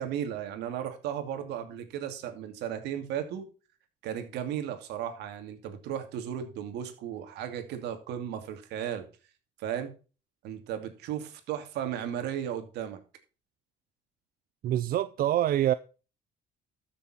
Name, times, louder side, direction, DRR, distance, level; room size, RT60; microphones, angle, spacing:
voice 1, 0.0-3.5 4.0-9.1 9.6-9.9 10.4-13.0, right 9 dB, 85° right, 2.6 m, -35 dB
voice 2, 14.6-15.7, right 12 dB, 60° right, 0.6 m, -25 dB
13.5 x 7.1 x 4.3 m
cardioid pair, 110°, 17 cm